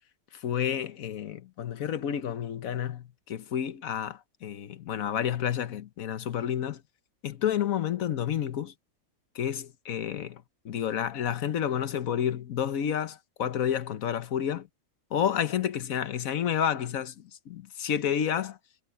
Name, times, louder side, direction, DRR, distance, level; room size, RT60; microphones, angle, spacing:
voice 1, 0.3-6.8 7.2-8.7 9.3-14.7 15.1-18.6, left 9 dB, 75° left, 1.4 m, -30 dB
omnidirectional pair, 1.5 m